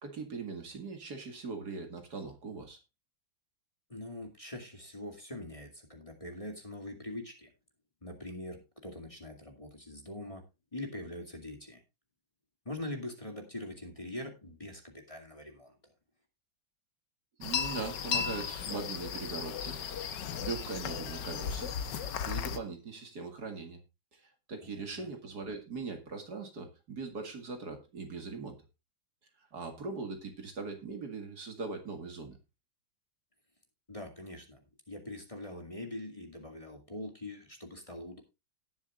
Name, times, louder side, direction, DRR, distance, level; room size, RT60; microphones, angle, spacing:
voice 1, 0.0-2.8 17.4-19.8 20.4-21.8 22.3-23.8 24.1-28.6 29.5-32.4, right 4 dB, 60° right, 5 dB, 2.5 m, -40 dB
voice 2, 3.9-7.5 8.0-10.4 10.7-11.8 12.7-15.8 24.6-25.1 33.9-38.2, left 1 dB, 15° left, 2 dB, 2.4 m, -43 dB
sound 1, 17.4-22.6, left 7 dB, 70° left, 1.7 m, -35 dB
18.5 x 7.2 x 2.4 m, 0.26 s
omnidirectional pair, 2.0 m